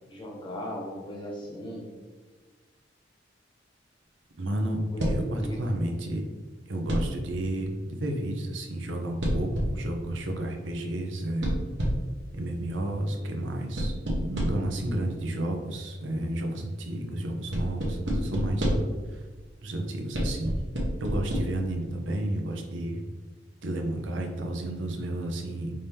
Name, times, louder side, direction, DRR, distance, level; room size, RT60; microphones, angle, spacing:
voice 1, 0.1-2.0 4.9-5.8, equal, 25° left, -2 dB, 1.0 m, -38 dB
voice 2, 4.4-4.8 5.1-6.2 6.7-11.5 12.3-18.8 19.1-19.3 19.6-20.5 21.0-23.0 23.6-25.7, right 1 dB, 90° right, 3 dB, 0.7 m, -31 dB
sound 1, 5.0-5.4 6.9-7.3 9.2-9.9 11.4-12.2 13.8-14.8 17.5-19.0 20.1-21.4, equal, 70° right, 1.1 m, -28 dB
5.1 x 2.8 x 3.4 m, 1.4 s
head